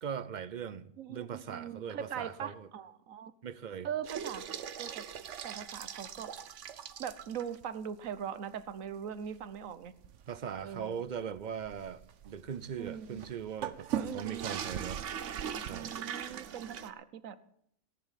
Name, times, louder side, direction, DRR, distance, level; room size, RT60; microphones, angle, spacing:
voice 1, 0.0-2.7 3.4-3.9 10.3-15.0 15.6-15.9, right 7 dB, 50° right, 0.6 m, -40 dB
voice 2, 1.0-3.3 3.8-4.4 4.8-5.0 5.4-6.3 7.0-9.9 10.6-11.0 12.8-13.2 13.9-14.5 15.7-17.4, right 8 dB, 85° right, 1.3 m, -41 dB
sound 1, 4.0-7.6 8.1-8.2 8.6-8.7 9.2-16.9, right 8 dB, 70° right, 1.1 m, -40 dB
17.5 x 10.0 x 5.8 m
omnidirectional pair, 1.4 m